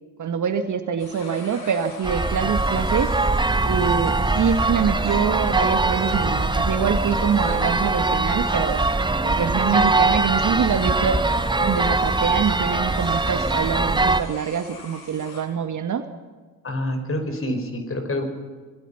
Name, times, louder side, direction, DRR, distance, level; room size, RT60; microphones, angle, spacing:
voice 1, 0.2-3.1 3.6-8.8 9.2-11.2 11.6-16.0, right 7 dB, 35° right, 9 dB, 1.8 m, -25 dB
sound 1, 1.0-15.4, left 3 dB, 50° left, 7.7 m, -43 dB
sound 2, 2.0-14.2, right 2 dB, 10° right, 1.2 m, -22 dB
voice 2, 16.6-18.2, left 1 dB, 25° left, 7 dB, 5.6 m, -27 dB
25.5 x 22.5 x 5.8 m, 1.4 s
hypercardioid pair, 60°, 48 cm